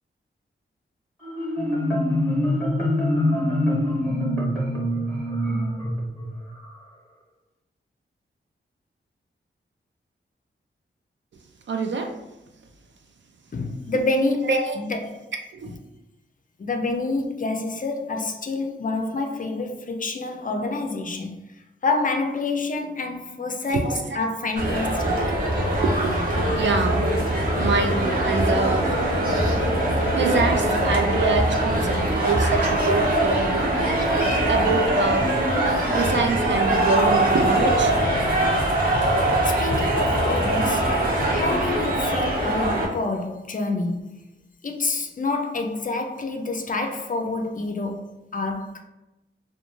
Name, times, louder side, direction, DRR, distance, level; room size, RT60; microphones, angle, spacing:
Marimba xylophone, 1.2-6.8, left 1 dB, 10° left, 1.0 m, -24 dB
voice 1, 11.7-12.1 14.5-14.8 15.5-15.7 23.7-24.2 25.8-27.0 27.6-29.0 30.0-33.7 34.5-35.3 35.9-37.9 38.4-38.5, right 4 dB, 60° right, 0.4 m, -25 dB
voice 2, 13.5-15.3 16.6-21.5 21.8-25.1 39.4-40.9 41.3-44.2 44.6-48.8, left 3 dB, 40° left, 0.4 m, -27 dB
sound 1, 24.6-42.9, right 1 dB, 40° right, 0.9 m, -22 dB
2.4 x 2.3 x 3.0 m
wide cardioid pair, 85°, 21 cm